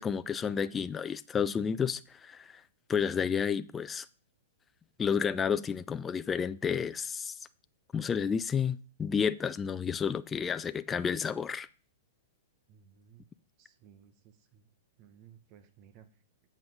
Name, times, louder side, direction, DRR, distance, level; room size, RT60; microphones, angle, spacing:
voice 1, 0.0-2.6 2.9-4.1 5.0-7.3 7.9-11.7, left 7 dB, 20° left, 0.4 m, -31 dB
voice 2, 12.7-13.2 13.6-14.7 15.0-16.1, right 9 dB, 40° right, 0.9 m, -58 dB
7.8 x 4.8 x 5.4 m
hypercardioid pair, 120°, 0 cm